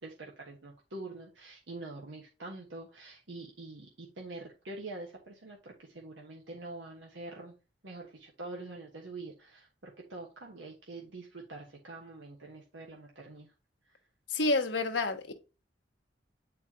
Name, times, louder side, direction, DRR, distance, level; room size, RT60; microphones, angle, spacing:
voice 1, 0.0-7.6 7.8-13.5 13.9-14.0, right 2 dB, 90° right, 1.3 m, -45 dB
voice 2, 14.3-15.3, left 2 dB, 90° left, 1.1 m, -29 dB
8.7 x 4.6 x 2.8 m
head